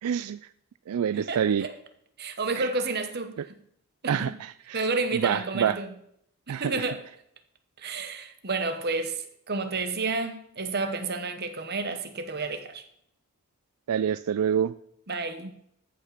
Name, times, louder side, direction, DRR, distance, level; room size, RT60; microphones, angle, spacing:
voice 1, 0.0-0.4 0.9-1.7 2.6-2.7 4.1-4.8 5.1-5.8 6.5-6.9 7.8-8.0 13.9-14.7, right 8 dB, 80° right, 0.3 m, -27 dB
voice 2, 1.1-1.7 2.2-3.6 4.0-4.3 4.7-5.9 6.5-7.0 7.8-12.9 15.1-15.5, right 3 dB, 45° right, 1.1 m, -31 dB
14.0 x 5.8 x 5.9 m
head